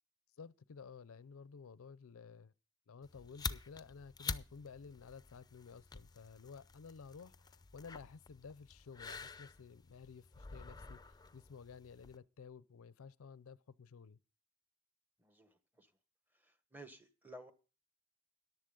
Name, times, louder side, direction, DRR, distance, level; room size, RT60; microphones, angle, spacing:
voice 1, 0.4-2.5 2.9-14.2, left 5 dB, 70° left, 0.5 m, -54 dB
sound 1, 3.0-12.2, left 5 dB, 20° left, 0.5 m, -48 dB
voice 2, 15.2-15.9 16.3-17.5, right 1 dB, 10° right, 1.2 m, -55 dB
14.0 x 11.0 x 3.7 m
head